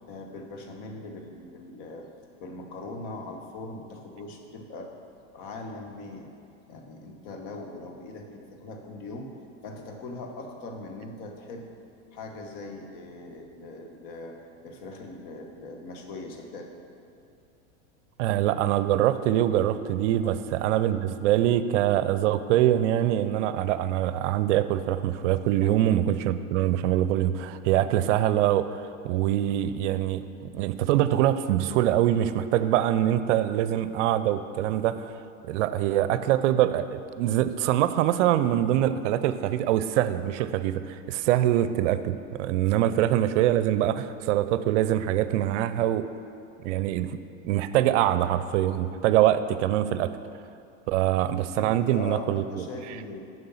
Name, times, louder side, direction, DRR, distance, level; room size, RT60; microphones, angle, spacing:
voice 1, 0.1-2.1 2.4-4.9 5.3-6.3 6.7-9.3 9.6-11.7 12.1-16.8 20.2-20.3 25.6-25.7 42.8-42.9 51.6-53.2, left 2 dB, 55° left, 3 dB, 1.3 m, -40 dB
voice 2, 18.2-30.2 30.5-35.2 35.4-46.1 46.6-47.2 47.4-50.1 50.9-52.6, right 12 dB, 70° right, 12 dB, 0.5 m, -24 dB
6.9 x 6.7 x 5.6 m, 2.5 s
hypercardioid pair, 110°, 38 cm